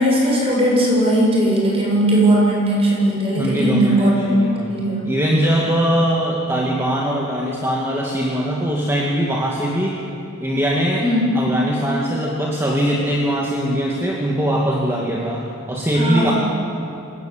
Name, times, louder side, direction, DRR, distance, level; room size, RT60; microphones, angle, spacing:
voice 1, 0.0-5.0 11.0-11.4 15.9-16.3, right 1 dB, 30° right, -4 dB, 7.6 m, -18 dB
voice 2, 3.3-4.7 5.0-10.0 10.4-11.0 11.3-16.3, equal, 10° right, -3 dB, 2.0 m, -21 dB
26.5 x 16.0 x 9.0 m, 2.6 s
head